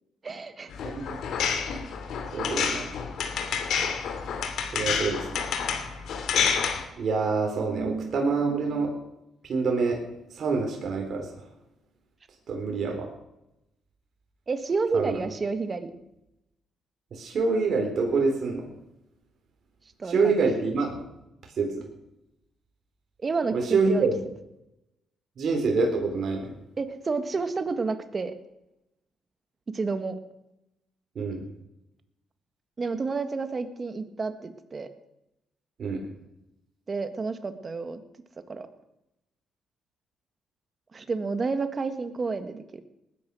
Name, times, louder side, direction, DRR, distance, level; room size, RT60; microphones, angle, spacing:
voice 1, 0.2-0.7 7.6-8.2 14.5-15.9 20.0-20.5 23.2-24.1 26.8-28.4 29.7-30.2 32.8-34.9 36.9-38.0 38.5-38.7 40.9-42.8, right 4 dB, 35° right, 9 dB, 1.8 m, -30 dB
sound 1, 0.7-6.8, left 6 dB, 75° left, 2.4 m, -29 dB
voice 2, 0.8-1.2 2.3-2.9 4.7-5.4 7.0-8.9 9.5-10.0 10.3-11.3 12.5-13.1 14.9-15.2 17.1-18.6 20.1-21.0 21.6-21.8 23.5-24.1 25.4-26.5 31.2-31.4 35.8-36.0, right 4 dB, 55° right, 1 dB, 4.0 m, -26 dB
19.5 x 10.0 x 6.3 m, 0.88 s
cardioid pair, 90°, 0 cm